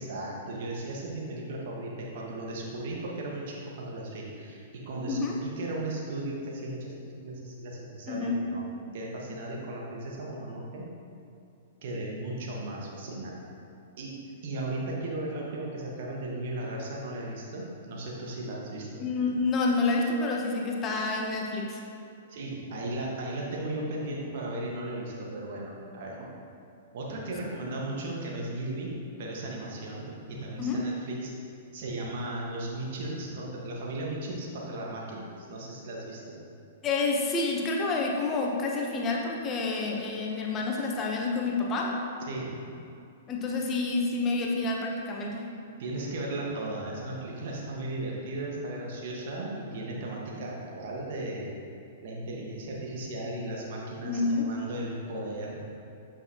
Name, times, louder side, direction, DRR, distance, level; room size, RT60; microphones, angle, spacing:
voice 1, 0.0-8.6 8.9-10.8 11.8-13.3 14.0-19.0 22.3-26.3 26.9-28.9 29.2-31.3 31.7-36.4 42.3-42.6 45.8-51.5 52.0-55.7, right 1 dB, 55° right, -3 dB, 1.4 m, -36 dB
voice 2, 5.1-5.4 8.1-8.4 19.0-21.8 30.6-30.8 36.8-42.0 43.3-45.5 54.0-54.5, left 3 dB, 25° left, -1 dB, 0.9 m, -28 dB
8.0 x 5.7 x 2.9 m, 2.6 s
figure-of-eight pair, 110°, 0 cm